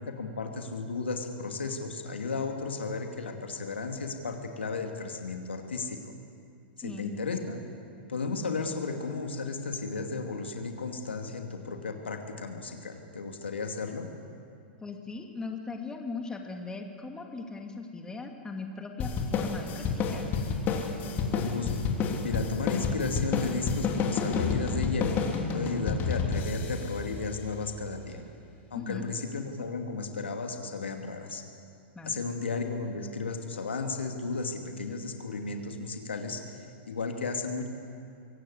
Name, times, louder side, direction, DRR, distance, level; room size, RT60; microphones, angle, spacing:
voice 1, 0.1-6.1 6.8-7.6 8.1-14.1 21.3-21.8 22.2-25.2 25.5-28.2 28.7-31.4 32.1-37.7, left 4 dB, 85° left, 4 dB, 2.5 m, -34 dB
voice 2, 6.8-7.1 14.8-20.3 28.7-29.0 31.9-32.2, left 3 dB, 10° left, 3 dB, 2.4 m, -39 dB
sound 1, 19.0-27.8, left 5 dB, 35° left, 3.3 m, -30 dB
23.5 x 17.0 x 8.4 m, 2.4 s
hypercardioid pair, 105°, 6 cm